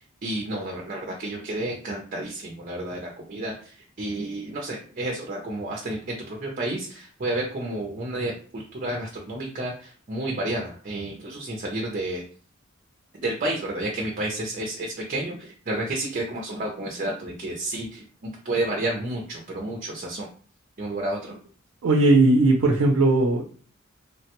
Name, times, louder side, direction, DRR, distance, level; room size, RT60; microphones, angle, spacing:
voice 1, 0.2-3.5 4.0-12.2 13.2-20.3 20.8-21.4, right 1 dB, 40° right, 0 dB, 0.5 m, -31 dB
voice 2, 21.8-23.4, right 2 dB, 90° right, 2 dB, 0.5 m, -18 dB
3.2 x 2.1 x 2.9 m, 0.42 s
head